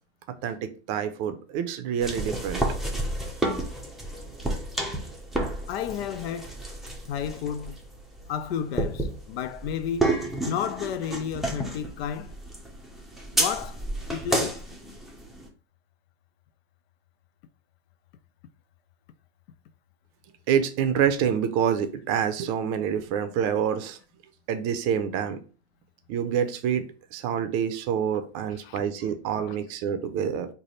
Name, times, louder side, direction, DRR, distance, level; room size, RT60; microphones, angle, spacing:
voice 1, 0.4-2.7 20.5-24.0 24.5-25.4 26.1-26.8 27.1-30.5, right 8 dB, 45° right, 0.6 m, -27 dB
sound 1, 2.0-15.5, right 1 dB, ahead, 0.6 m, -31 dB
voice 2, 5.7-6.5 7.1-7.8 8.3-10.1 10.4-12.3 13.3-14.6 28.6-28.8 29.5-29.6, left 8 dB, 60° left, 0.5 m, -32 dB
3.3 x 2.2 x 4.0 m
hypercardioid pair, 100°, 34 cm